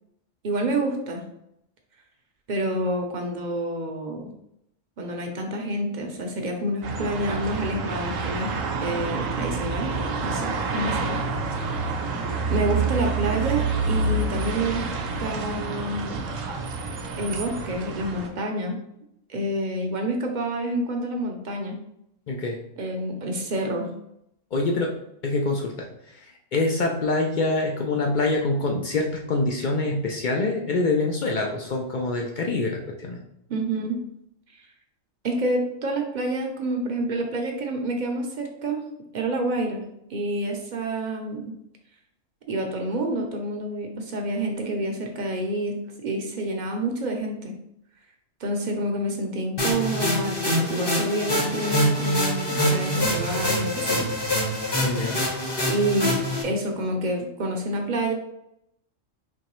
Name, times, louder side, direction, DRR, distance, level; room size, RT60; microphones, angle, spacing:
voice 1, 0.4-1.2 2.5-4.3 5.0-8.5 8.8-10.0 10.2-11.2 11.5-11.7 12.5-14.9 15.2-16.2 17.2-18.8 19.3-21.8 22.8-23.9 33.5-34.0 34.5-34.7 35.2-38.8 39.1-39.8 40.1-41.5 42.5-47.6 48.4-54.1 55.7-58.1, right 1 dB, 50° right, 2 dB, 0.6 m, -28 dB
sound 1, 6.8-18.3, right 4 dB, 75° right, 1.0 m, -28 dB
voice 2, 22.3-22.6 24.5-24.9 25.2-33.2 54.8-55.2, left 2 dB, 75° left, 1 dB, 0.4 m, -25 dB
sound 2, 49.6-56.4, equal, 25° left, 0.6 m, -25 dB
4.5 x 3.0 x 3.0 m, 0.79 s
omnidirectional pair, 1.4 m